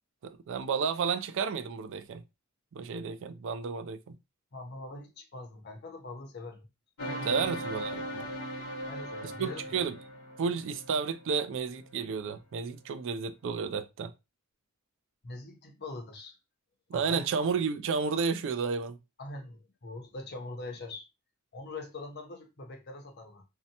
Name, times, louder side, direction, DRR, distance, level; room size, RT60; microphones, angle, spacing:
voice 1, 0.2-2.2 2.7-4.2 7.2-8.3 9.2-10.0 10.4-14.1 16.9-19.0, right 5 dB, 60° right, 0.3 m, -32 dB
voice 2, 4.5-6.7 7.0-7.5 8.8-9.8 15.2-16.4 16.9-17.3 19.2-21.1 21.5-23.4, left 2 dB, 50° left, 0.7 m, -43 dB
sound 1, 7.0-12.0, equal, 80° left, 1.0 m, -38 dB
2.7 x 2.1 x 2.7 m
head